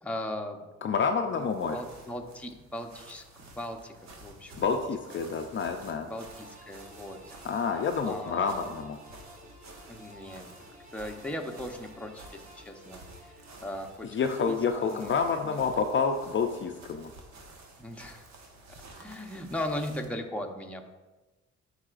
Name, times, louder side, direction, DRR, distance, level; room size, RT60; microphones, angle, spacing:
voice 1, 0.0-0.7 1.3-3.9 4.2-4.8 6.0-7.3 8.0-8.7 9.9-10.5 10.9-13.4 13.6-14.2 14.5-15.1 15.4-15.7 17.8-18.3 19.0-20.9, left 1 dB, 5° left, 2 dB, 0.7 m, -38 dB
voice 2, 0.8-1.8 4.6-6.1 7.4-9.0 14.1-17.1, left 5 dB, 40° left, 5 dB, 0.5 m, -28 dB
sound 1, 1.1-20.2, right 2 dB, 65° right, 1.2 m, -51 dB
sound 2, 6.1-14.5, equal, 25° right, 2.3 m, -53 dB
11.0 x 4.8 x 2.5 m, 1.2 s
cardioid pair, 90°, 30 cm